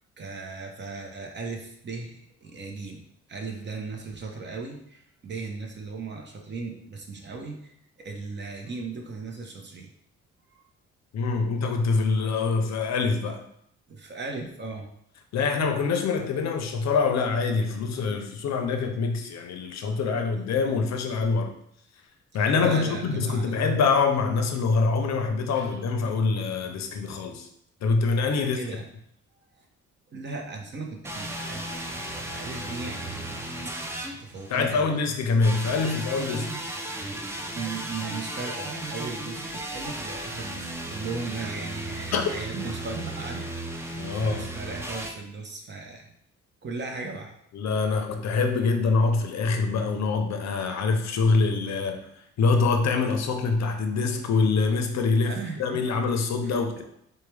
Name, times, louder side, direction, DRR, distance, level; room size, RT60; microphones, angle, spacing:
voice 1, 0.2-3.0 3.3-7.8 8.0-9.9 10.6-10.7 13.9-14.9 22.6-23.6 25.5-25.8 28.4-28.9 29.6-29.7 30.1-31.8 32.2-33.4 34.1-34.9 35.5-35.8 37.5-43.5 43.8-46.1 46.6-47.3 55.2-55.8 56.4-56.8, right 4 dB, 35° right, 2 dB, 0.8 m, -37 dB
voice 2, 11.1-13.4 15.3-21.5 22.3-27.5 27.8-28.6 34.5-36.5 42.1-42.2 44.0-44.5 47.5-52.1 52.4-56.8, left 4 dB, 60° left, 6 dB, 0.6 m, -25 dB
sound 1, 31.0-34.8 35.4-45.1, right 1 dB, 10° right, 0.4 m, -35 dB
4.5 x 2.3 x 3.2 m, 0.73 s
cardioid pair, 90°, 30 cm